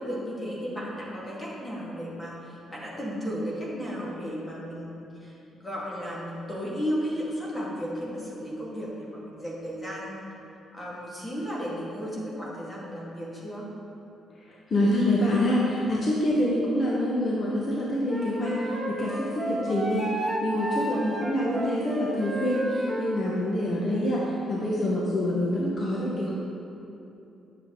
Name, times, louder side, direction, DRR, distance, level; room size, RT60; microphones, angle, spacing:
voice 1, 0.0-10.3 10.7-13.7 20.7-21.2, equal, 20° left, -6 dB, 2.2 m, -34 dB
voice 2, 14.5-26.3, left 1 dB, 45° left, -5 dB, 1.3 m, -26 dB
Wind instrument woodwind instrument, 18.1-23.1, equal, ahead, 1.5 m, -32 dB
9.4 x 7.4 x 3.9 m, 2.8 s
cardioid pair, 90°, 0 cm